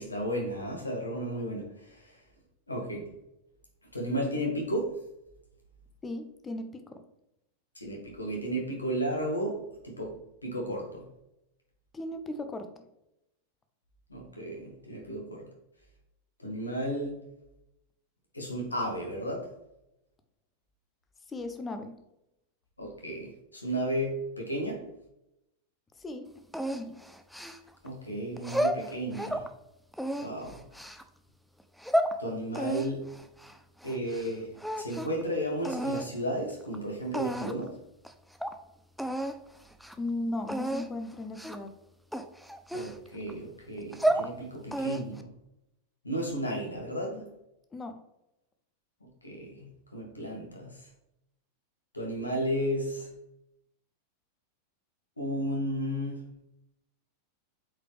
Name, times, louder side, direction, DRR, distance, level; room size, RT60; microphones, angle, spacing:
voice 1, 0.0-2.2 2.7-3.1 3.9-5.0 7.8-10.2 10.4-11.1 14.1-15.5 16.4-17.2 18.3-19.5 22.8-24.9 27.8-29.5 30.2-30.6 32.2-33.2 33.8-37.8 42.7-45.3 46.0-47.3 49.0-50.9 51.9-53.1 55.2-56.3, equal, 80° left, 0 dB, 1.9 m, -33 dB
voice 2, 6.0-7.0 11.9-12.7 21.3-22.0 26.0-26.3 26.7-27.0 40.0-41.7 47.7-47.9, left 2 dB, 15° left, 8 dB, 0.9 m, -36 dB
sound 1, 26.5-27.9 28.4-29.5 29.9-31.0 31.6-32.1 32.5-34.3 34.6-35.2 35.6-36.1 36.7-36.8 37.1-37.7 38.0-38.1 38.4-38.6 39.0-39.4 39.7-39.9 40.5-40.9 41.4-41.7 42.1-43.3 43.8-44.3 44.7-45.2, right 1 dB, ahead, 0.5 m, -31 dB
8.2 x 5.0 x 3.4 m, 0.87 s
figure-of-eight pair, 90°, 0 cm